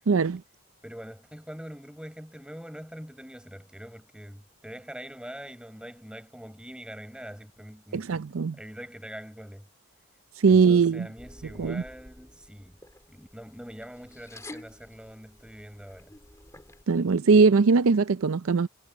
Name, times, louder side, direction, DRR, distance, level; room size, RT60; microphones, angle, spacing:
voice 1, 0.1-0.4 7.9-8.5 10.4-11.1 11.6-11.8 16.9-18.7, right 5 dB, 70° right, 0.5 m, -21 dB
voice 2, 0.8-8.3 8.6-9.7 10.5-12.8 13.1-16.1, equal, 5° right, 6.3 m, -43 dB
sound 1, 11.2-16.8, left 1 dB, 15° left, 2.5 m, -50 dB
head